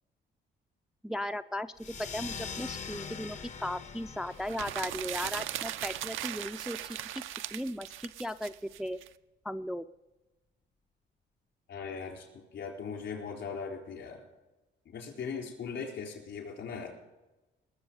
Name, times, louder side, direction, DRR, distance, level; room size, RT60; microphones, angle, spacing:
voice 1, 1.0-6.8 7.5-9.0 9.4-9.8, left 1 dB, ahead, 9 dB, 0.4 m, -36 dB
sound 1, 1.8-6.9, left 6 dB, 35° left, 0.7 m, -44 dB
sound 2, 4.4-9.1, right 12 dB, 85° right, 0.5 m, -38 dB
voice 2, 11.7-14.2 14.9-17.0, left 5 dB, 65° left, 2 dB, 4.1 m, -39 dB
20.0 x 7.0 x 5.5 m, 1.1 s
cardioid pair, 90°, 20 cm